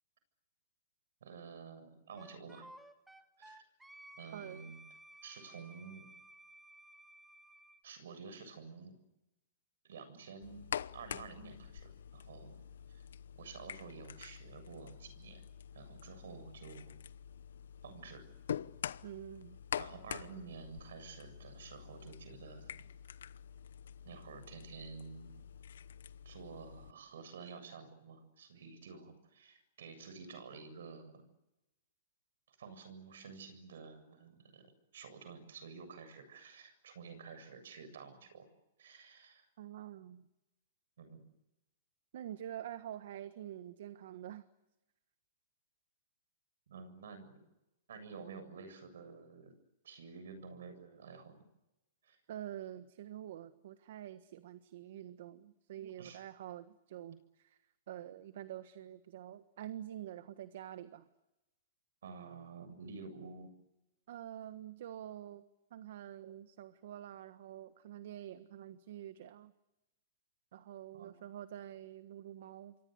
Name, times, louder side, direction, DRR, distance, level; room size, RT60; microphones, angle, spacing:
voice 1, 1.2-2.7 3.4-3.6 4.2-4.8 5.2-6.1 7.8-9.0 9.8-10.6 10.9-13.0 13.4-15.4 15.7-17.0 17.8-18.2 19.8-22.9 24.0-25.3 26.2-31.2 32.5-34.7 34.9-38.5 38.8-39.5 41.0-41.2 46.7-47.4 47.9-49.5 49.8-51.4 52.0-52.2 56.0-56.2 62.0-63.5 70.9-71.2, right 5 dB, 80° right, 10 dB, 7.6 m, -50 dB
Wind instrument woodwind instrument, 2.2-7.8, right 1 dB, 5° right, 1.7 m, -56 dB
voice 2, 4.3-4.7 19.0-19.6 39.6-40.3 42.1-44.5 52.3-57.6 57.9-61.1 64.1-65.4 65.7-69.5 70.5-72.8, right 11 dB, 65° right, 11 dB, 1.5 m, -47 dB
sound 1, 10.4-26.9, left 9 dB, 85° left, 0.9 m, -46 dB
28.0 x 24.0 x 8.0 m, 0.96 s
hypercardioid pair, 150°, 0 cm